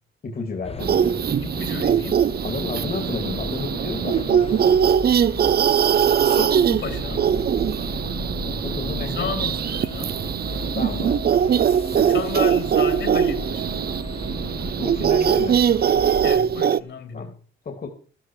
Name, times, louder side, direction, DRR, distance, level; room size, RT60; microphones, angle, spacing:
voice 1, 0.2-1.2 2.4-5.1 8.4-9.3 10.7-11.3 11.9-12.2 14.8-15.7 17.1-17.3 17.6-17.9, left 4 dB, 45° left, 2.4 m, -32 dB
sound 1, 0.6-16.4, left 4 dB, 30° left, 1.0 m, -36 dB
sound 2, 0.7-16.6, right 5 dB, 70° right, 3.0 m, -38 dB
sound 3, 0.8-16.8, right 8 dB, 50° right, 0.6 m, -21 dB
voice 2, 1.4-2.3 6.2-7.3 9.1-10.2 12.1-13.7 16.2-17.2, left 5 dB, 60° left, 3.6 m, -32 dB
13.0 x 13.0 x 4.6 m
cardioid pair, 95°, 21 cm